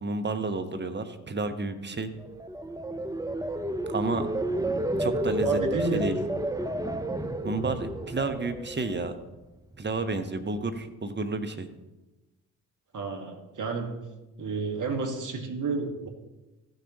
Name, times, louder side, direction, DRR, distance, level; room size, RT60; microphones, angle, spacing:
voice 1, 0.0-2.1 3.9-4.3 5.0-5.6 5.9-6.2 7.4-9.2 9.8-11.7, right 3 dB, 25° right, 8 dB, 1.2 m, -30 dB
sound 1, 2.2-9.3 9.7-10.1, right 1 dB, 10° right, 0.8 m, -31 dB
voice 2, 5.4-6.1 12.9-14.0 14.4-16.1, right 3 dB, 45° right, 4 dB, 1.8 m, -31 dB
15.5 x 6.7 x 3.0 m, 1.1 s
hypercardioid pair, 45°, 41 cm